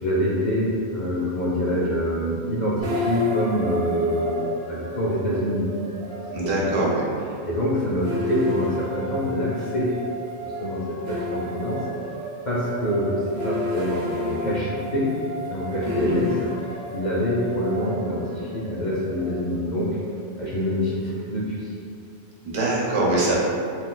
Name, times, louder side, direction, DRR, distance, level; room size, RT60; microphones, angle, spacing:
voice 1, 0.0-5.7 6.4-6.7 7.5-9.9 10.4-11.8 12.5-15.1 15.5-16.5 16.9-19.9 20.4-21.7, equal, 55° left, -7 dB, 0.5 m, -25 dB
sound 1, 2.8-21.9, left 1 dB, 60° right, 0.8 m, -33 dB
voice 2, 6.3-7.1 15.9-16.2 22.4-23.4, right 2 dB, 85° right, -5 dB, 1.1 m, -23 dB
2.5 x 2.4 x 3.7 m, 2.3 s
omnidirectional pair, 1.2 m